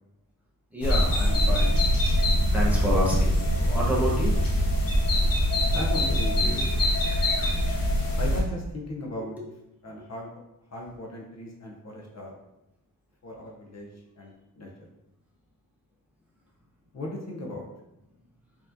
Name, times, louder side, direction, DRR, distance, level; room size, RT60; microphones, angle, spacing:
voice 1, 0.7-1.7 2.0-2.1 2.5-4.3, equal, 5° right, -5 dB, 0.7 m, -29 dB
sound 1, 0.8-8.4, equal, 70° left, 0.9 m, -23 dB
voice 2, 5.7-6.6 8.2-9.4 9.8-10.3 10.7-12.3 13.2-13.9 14.2-14.7 16.9-17.6, left 1 dB, 50° left, -1 dB, 0.6 m, -36 dB
4.4 x 2.8 x 2.5 m, 0.89 s
wide cardioid pair, 160°, 36 cm